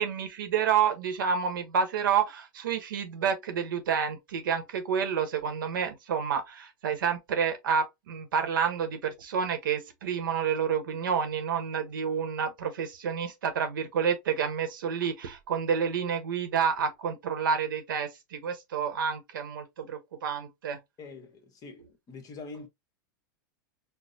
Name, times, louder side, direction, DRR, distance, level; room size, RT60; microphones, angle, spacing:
voice 1, 0.0-20.8, right 7 dB, 85° right, 0.9 m, -29 dB
voice 2, 21.0-22.7, left 3 dB, 35° left, 1.1 m, -44 dB
4.4 x 2.0 x 2.5 m
hypercardioid pair, 125°, 11 cm